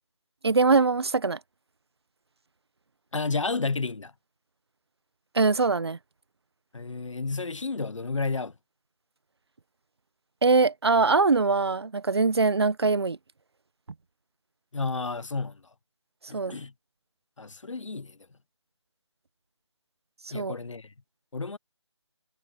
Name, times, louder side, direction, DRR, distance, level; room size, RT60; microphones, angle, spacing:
voice 1, 0.4-1.4 5.3-6.0 10.4-13.2 16.3-16.6 20.3-20.5, right 4 dB, 55° right, 1.2 m, -22 dB
voice 2, 3.1-4.1 6.7-8.5 14.7-15.6 16.3-16.7 17.4-18.2 20.3-20.9 21.3-21.6, left 3 dB, 85° left, 1.1 m, -31 dB
figure-of-eight pair, 170°, 16 cm